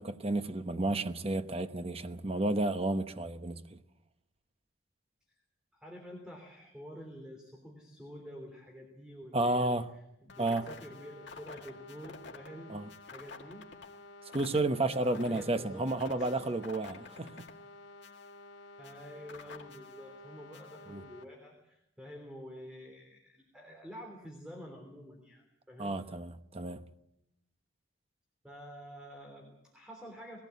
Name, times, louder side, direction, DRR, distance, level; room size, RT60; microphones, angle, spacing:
voice 1, 0.0-3.8 9.3-9.9 10.4-10.6 12.7-12.9 14.3-17.4 20.9-21.0 25.8-26.8, right 2 dB, 30° right, 1.0 m, -31 dB
voice 2, 5.7-12.7 13.0-13.7 15.0-16.4 18.8-26.0 28.4-30.4, equal, 5° right, 3.3 m, -48 dB
sound 1, 10.3-21.2, left 3 dB, 60° left, 2.0 m, -50 dB
21.0 x 16.5 x 8.4 m
head